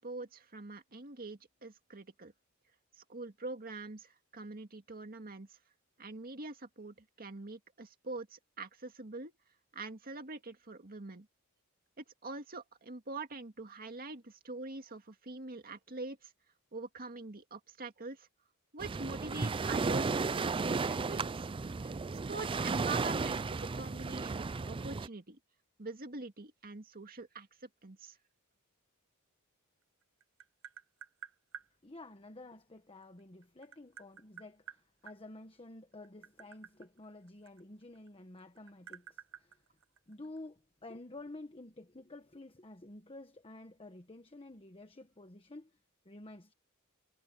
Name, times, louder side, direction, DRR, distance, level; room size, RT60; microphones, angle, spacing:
voice 1, 0.0-2.3 3.0-5.6 6.0-9.3 9.7-11.3 12.0-16.3 16.7-18.3 18.7-21.5 21.8-25.4 25.8-27.5 27.8-28.2, right 3 dB, 45° right, 2.0 m, -44 dB
Waves surf, 18.8-25.1, right 4 dB, 25° right, 0.4 m, -34 dB
Tap, 29.8-31.7 33.0-35.2 35.9-38.1 38.4-40.4, right 8 dB, 65° right, 1.3 m, -51 dB
voice 2, 31.8-39.6 40.1-45.8 46.0-46.5, left 2 dB, 25° left, 1.3 m, -51 dB
head